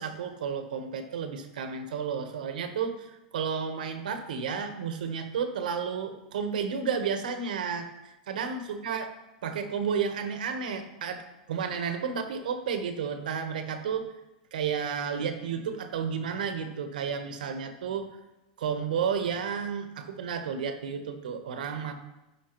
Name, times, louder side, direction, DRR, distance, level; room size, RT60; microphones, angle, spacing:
voice 1, 0.0-7.9 8.3-9.1 9.4-14.1 14.5-18.1 18.6-22.0, right 6 dB, 80° right, 7 dB, 1.1 m, -32 dB
12.0 x 5.0 x 3.0 m, 0.97 s
hypercardioid pair, 120°, 4 cm